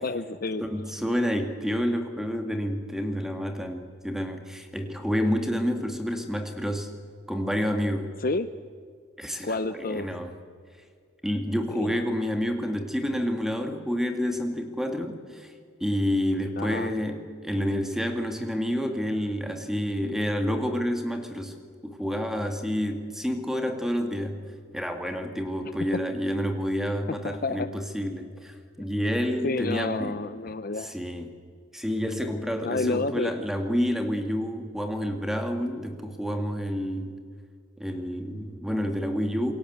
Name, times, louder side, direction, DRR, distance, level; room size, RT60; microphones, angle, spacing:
voice 1, 0.0-0.6 8.2-8.5 9.4-10.1 11.7-12.1 16.6-16.9 25.6-25.7 27.2-27.7 29.4-30.9 32.6-33.3, left 3 dB, 40° left, 12 dB, 0.7 m, -29 dB
voice 2, 0.6-6.9 7.3-8.1 9.2-10.3 11.2-15.5 15.8-21.6 21.8-24.4 24.7-30.2 30.8-31.3 31.7-37.2 37.8-39.5, equal, ahead, 5 dB, 2.2 m, -29 dB
27.5 x 23.0 x 8.2 m, 2.1 s
head